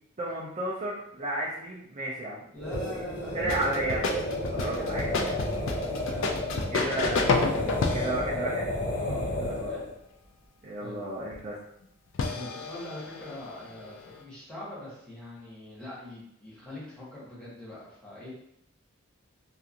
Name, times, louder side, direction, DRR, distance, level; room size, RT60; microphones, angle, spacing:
voice 1, 0.2-2.4 3.3-4.2 4.5-5.4 6.7-7.4 7.9-8.7 9.5-9.8 10.6-11.6, right 1 dB, 30° right, -6 dB, 0.4 m, -33 dB
sound 1, 2.5-9.9, left 1 dB, 40° left, 0.8 m, -32 dB
voice 2, 2.5-3.3 4.5-5.2 5.7-7.0 8.0-8.6 9.0-9.9 10.8-11.0 12.2-18.3, left 1 dB, 5° left, -9 dB, 0.9 m, -43 dB
sound 2, 3.5-8.3 11.3-11.4 12.2-14.2, left 4 dB, 60° left, 0.3 m, -30 dB
2.8 x 2.4 x 2.4 m, 0.75 s
head